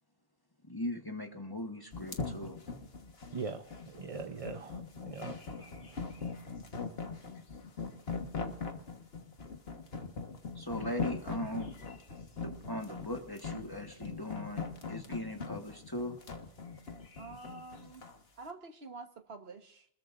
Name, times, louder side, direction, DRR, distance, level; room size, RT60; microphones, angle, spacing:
voice 1, 0.6-2.6 10.5-11.8 12.4-16.2, left 1 dB, 20° left, 4 dB, 1.5 m, -39 dB
sound 1, 1.9-18.2, left 4 dB, 70° left, 1.7 m, -41 dB
voice 2, 3.3-3.6 3.9-5.6, right 5 dB, 35° right, 7 dB, 0.8 m, -41 dB
voice 3, 17.2-18.1 18.4-19.9, right 3 dB, 70° right, 6 dB, 1.6 m, -47 dB
26.5 x 20.5 x 2.6 m, 0.66 s
omnidirectional pair, 1.1 m